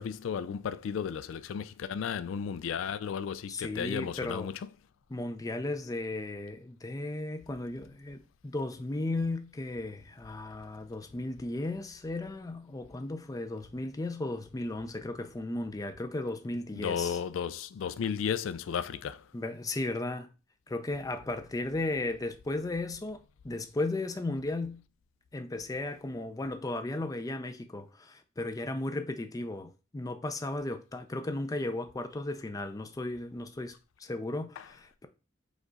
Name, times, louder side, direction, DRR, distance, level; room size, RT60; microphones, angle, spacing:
voice 1, 0.0-4.6 16.7-19.2 34.6-34.7, left 7 dB, 85° left, 0.3 m, -34 dB
voice 2, 3.5-4.5 5.1-17.2 19.3-20.3 20.7-24.8 25.3-35.1, left 2 dB, 20° left, 0.4 m, -35 dB
5.0 x 2.4 x 3.9 m
head